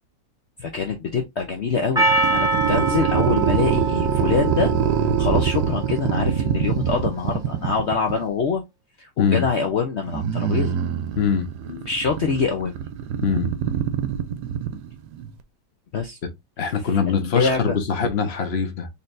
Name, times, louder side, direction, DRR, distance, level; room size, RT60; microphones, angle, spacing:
voice 1, 0.6-4.7 5.2-8.6 9.0-10.8 11.9-12.8 15.9-16.2 17.1-17.8, left 5 dB, 65° left, 0.6 m, -25 dB
Percussion, 2.0-6.3, right 3 dB, 5° right, 0.8 m, -25 dB
sound 1, 2.0-8.2 10.1-15.3, right 8 dB, 75° right, 1.1 m, -24 dB
voice 2, 11.2-11.9 13.2-13.6 16.6-18.9, left 6 dB, 45° left, 0.9 m, -23 dB
4.2 x 3.3 x 2.5 m
omnidirectional pair, 1.9 m